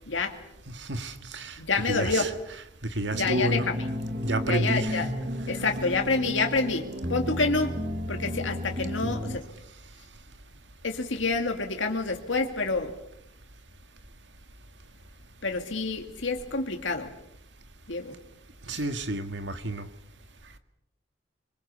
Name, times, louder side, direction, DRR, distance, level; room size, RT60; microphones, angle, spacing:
voice 1, 0.1-0.4 1.6-2.3 3.1-3.8 4.5-5.1 5.5-7.8 8.1-9.5 10.8-13.0 15.4-17.1 17.9-18.1 18.7-18.8, left 3 dB, 85° left, 4 dB, 2.2 m, -28 dB
voice 2, 0.7-1.6 1.9-2.3 2.9-3.7 4.2-5.0 18.7-19.9, right 1 dB, 70° right, 8 dB, 2.0 m, -30 dB
sound 1, 3.1-9.4, equal, 40° right, 1.6 m, -33 dB
26.0 x 24.0 x 6.9 m, 0.78 s
head